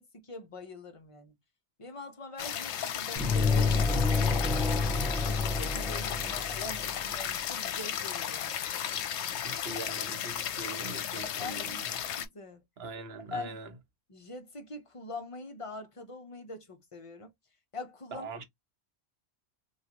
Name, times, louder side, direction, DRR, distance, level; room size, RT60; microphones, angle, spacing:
voice 1, 0.0-1.3 1.8-4.4 5.1-8.6 11.4-11.8 12.2-12.6 13.3-13.6 14.1-17.3 17.7-18.3, left 2 dB, 35° left, 0.6 m, -43 dB
sound 1, 2.4-12.3, left 9 dB, 80° left, 0.9 m, -35 dB
sound 2, 3.2-7.0, left 4 dB, ahead, 0.6 m, -28 dB
voice 2, 9.4-12.0 12.8-13.8 18.1-18.4, right 3 dB, 65° right, 1.0 m, -42 dB
3.0 x 2.4 x 2.8 m
omnidirectional pair, 1.1 m